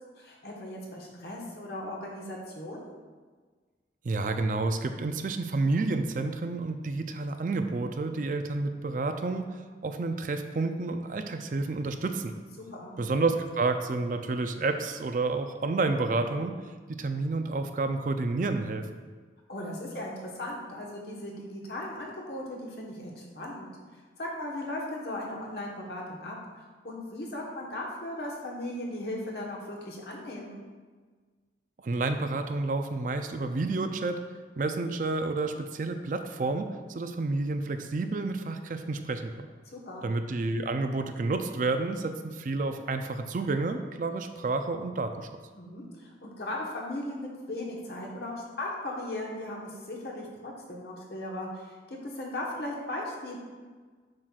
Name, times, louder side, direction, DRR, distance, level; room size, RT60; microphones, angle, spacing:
voice 1, 0.2-2.8 12.6-12.9 19.5-23.7 24.2-30.6 39.7-40.1 45.5-53.4, left 1 dB, 70° left, -2 dB, 1.2 m, -37 dB
voice 2, 4.0-12.3 13.0-16.6 17.0-18.8 31.8-34.2 34.6-39.5 40.0-45.3, right 3 dB, 50° right, 7 dB, 0.4 m, -30 dB
7.4 x 6.2 x 2.4 m, 1.4 s
head